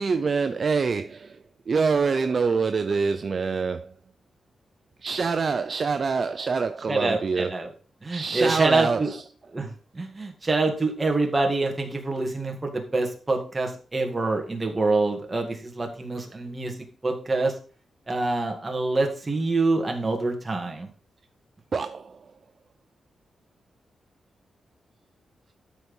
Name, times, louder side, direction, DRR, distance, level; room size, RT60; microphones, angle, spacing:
voice 1, 0.0-1.4 1.7-3.9 5.0-7.5 8.1-9.2 21.7-22.2, right 5 dB, 40° right, 0.5 m, -25 dB
voice 2, 6.9-7.7 8.0-9.1 9.5-16.8 17.0-17.5 18.1-20.9, right 3 dB, 20° right, 2.0 m, -26 dB
12.5 x 4.6 x 5.4 m
wide cardioid pair, 150°, 0 cm